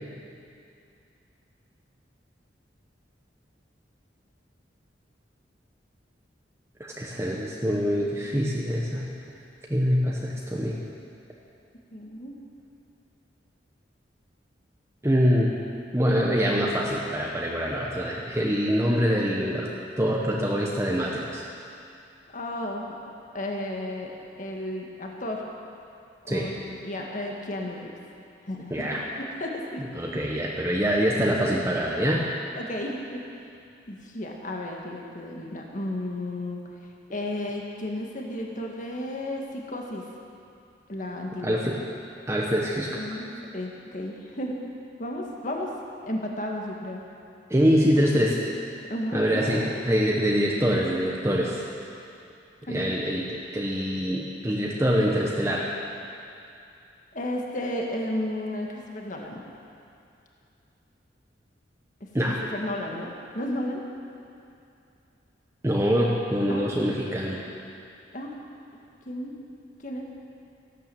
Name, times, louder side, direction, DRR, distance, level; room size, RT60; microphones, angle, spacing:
voice 1, 6.8-9.1 9.7-10.8 15.0-15.5 15.9-19.7 20.0-21.4 26.3-26.5 28.7-29.0 30.0-32.3 41.4-41.8 42.3-43.0 47.5-48.4 49.1-51.6 52.7-55.7 62.1-62.4 65.6-67.4, equal, 15° right, -3 dB, 1.2 m, -24 dB
voice 2, 11.9-12.3 22.3-24.1 24.4-25.4 26.3-27.9 28.4-30.2 32.6-33.2 33.9-36.6 37.1-40.0 40.9-41.7 43.0-44.6 45.0-45.7 46.0-47.0 48.9-49.6 52.6-52.9 57.1-59.4 62.2-63.1 63.3-63.8 65.9-66.0 66.5-66.7 68.1-68.3 69.1-69.4 69.8-70.0, left 1 dB, 45° left, 0 dB, 1.8 m, -33 dB
15.0 x 12.0 x 7.7 m, 2.6 s
head